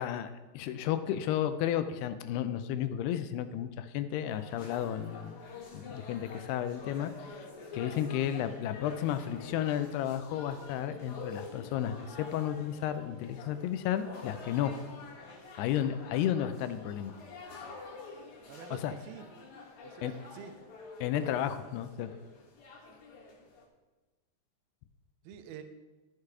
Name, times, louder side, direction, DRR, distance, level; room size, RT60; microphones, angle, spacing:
voice 1, 0.0-5.4 5.7-7.5 7.7-14.7 15.6-17.2 18.7-18.9 20.0-20.1 21.0-22.1, left 10 dB, 80° left, 10 dB, 2.6 m, -33 dB
sound 1, 4.2-23.6, left 3 dB, 55° left, 2.5 m, -48 dB
voice 2, 18.5-19.3 19.8-20.5 21.1-21.4 25.2-25.6, right 8 dB, 80° right, 8 dB, 2.4 m, -47 dB
13.0 x 6.6 x 4.8 m, 1.2 s
omnidirectional pair, 4.7 m